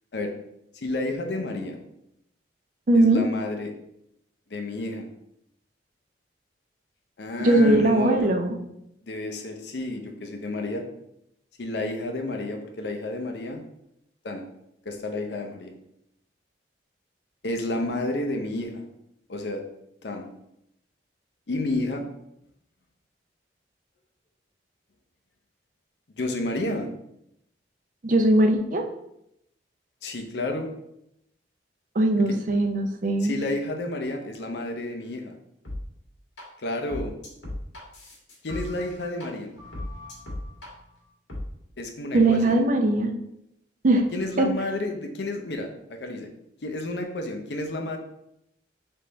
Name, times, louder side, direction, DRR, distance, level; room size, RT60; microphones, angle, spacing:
voice 1, 0.7-1.8 2.9-3.7 4.5-5.1 7.2-8.3 9.0-10.8 11.6-13.6 14.2-14.4 14.9-15.7 17.4-18.8 19.3-19.6 20.0-20.3 21.5-22.0 26.2-26.9 30.0-30.7 33.2-35.4 36.6-37.1 38.4-39.5 41.8-42.6 44.1-46.3 46.6-48.0, left 2 dB, 65° left, 4 dB, 0.6 m, -30 dB
voice 2, 2.9-3.2 7.4-8.6 28.0-28.8 32.0-33.3 42.1-43.1 43.8-44.1 44.4-44.5, right 2 dB, 45° right, 4 dB, 0.5 m, -20 dB
sound 1, 35.6-35.8 36.4-36.5 36.9-39.3 39.6-40.7 41.3-41.4, left 1 dB, 85° left, 1.5 m, -36 dB
3.5 x 3.3 x 3.9 m, 0.80 s
head